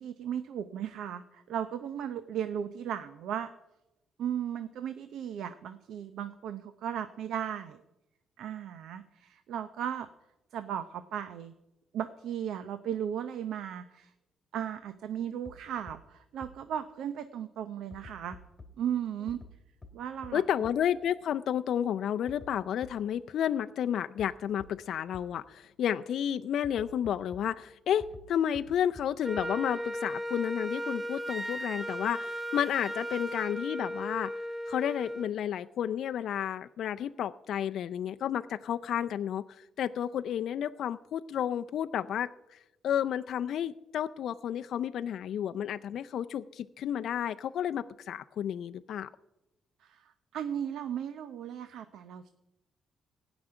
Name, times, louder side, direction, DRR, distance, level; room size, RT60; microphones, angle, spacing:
voice 1, 0.0-3.5 4.2-7.8 8.4-10.1 10.5-11.5 11.9-14.1 14.5-18.4 18.8-19.4 19.9-20.4 49.8-52.3, right 9 dB, 80° right, 11 dB, 0.8 m, -36 dB
sound 1, 15.4-15.5 15.9-16.0 16.4-16.5 17.9-18.7 19.3-19.5 19.8-19.9 20.2-20.3 20.6-20.7 22.3-22.5 22.8-22.9 24.2-24.3 24.6-24.7 25.1-25.2 26.6-27.4 28.0-28.2 28.5-28.6 28.9-29.0 29.4-29.5, left 3 dB, 25° left, 2.2 m, -48 dB
voice 2, 20.3-34.3 34.7-49.1, left 9 dB, 70° left, 9 dB, 0.4 m, -31 dB
Wind instrument woodwind instrument, 29.2-35.3, equal, 15° right, 0.6 m, -36 dB
16.0 x 6.1 x 9.9 m, 0.95 s
cardioid pair, 90°, 0 cm